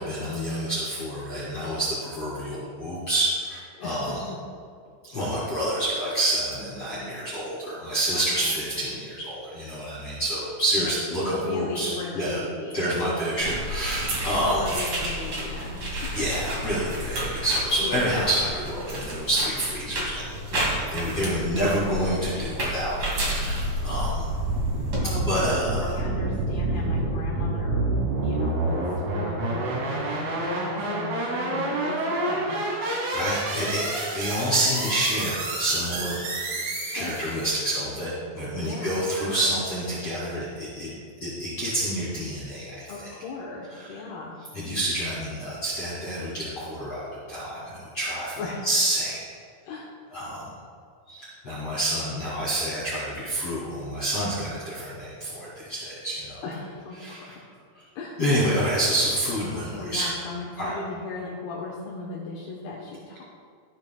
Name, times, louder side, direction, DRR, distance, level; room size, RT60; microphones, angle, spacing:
voice 1, 0.0-4.2 5.0-12.4 12.7-14.6 16.1-24.3 25.3-26.0 32.8-36.2 36.9-40.9 41.2-43.1 43.7-44.1 44.5-48.3 48.6-49.4 50.1-50.5 51.1-56.4 57.0-57.3 57.7-57.8 58.2-60.1 60.6-60.7, right 1 dB, 40° left, -10 dB, 2.4 m, -28 dB
voice 2, 3.8-4.4 8.1-8.5 10.8-12.9 14.4-16.1 17.8-18.1 21.4-22.0 25.0-32.6 36.8-37.2 38.5-39.6 42.9-44.4 48.4-48.6 49.6-49.9 56.4-57.4 58.0-58.2 59.5-63.2, left 3 dB, 75° left, -4 dB, 2.4 m, -37 dB
sound 1, 13.4-25.0, right 1 dB, 40° right, 2.0 m, -31 dB
sound 2, 23.2-37.6, right 2 dB, 80° right, 4.7 m, -28 dB
16.5 x 8.4 x 2.3 m, 2.2 s
omnidirectional pair, 5.8 m